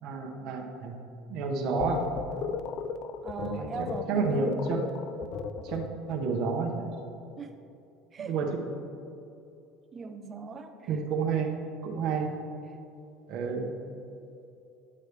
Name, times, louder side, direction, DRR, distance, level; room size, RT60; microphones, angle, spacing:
voice 1, 0.0-1.0 1.3-2.0 3.4-3.7 4.1-4.8 5.6-6.9 8.2-8.5 10.9-11.5 11.8-12.3 13.3-13.7, right 5 dB, 60° right, 0 dB, 0.9 m, -30 dB
sound 1, 1.8-6.2, left 6 dB, 55° left, 0.4 m, -35 dB
voice 2, 3.2-4.7 7.4-7.5 8.1-8.3 9.9-10.9, right 4 dB, 30° right, 7 dB, 0.6 m, -39 dB
9.6 x 6.3 x 3.3 m, 2.7 s
supercardioid pair, 115°, 0 cm